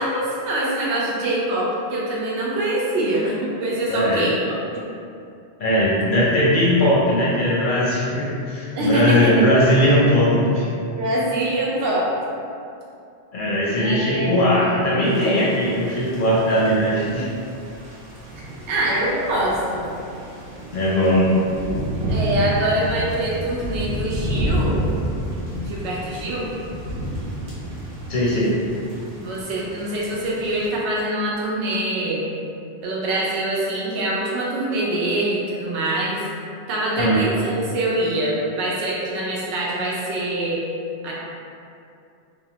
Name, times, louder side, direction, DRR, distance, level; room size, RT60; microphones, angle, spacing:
voice 1, 0.0-4.5 8.7-9.3 11.0-12.1 13.7-14.3 18.4-19.9 22.1-24.9 25.6-26.5 29.1-32.3 32.8-36.2 36.7-40.6 41.0-41.1, right 1 dB, 85° right, -5 dB, 0.9 m, -24 dB
voice 2, 3.9-4.3 5.6-10.7 13.3-17.3 20.7-21.4 28.1-28.5 37.0-37.3, equal, 60° left, -6 dB, 0.6 m, -19 dB
Thunder / Rain, 15.0-30.7, right 1 dB, 55° right, 0.8 m, -30 dB
2.7 x 2.0 x 2.8 m, 2.5 s
omnidirectional pair, 1.1 m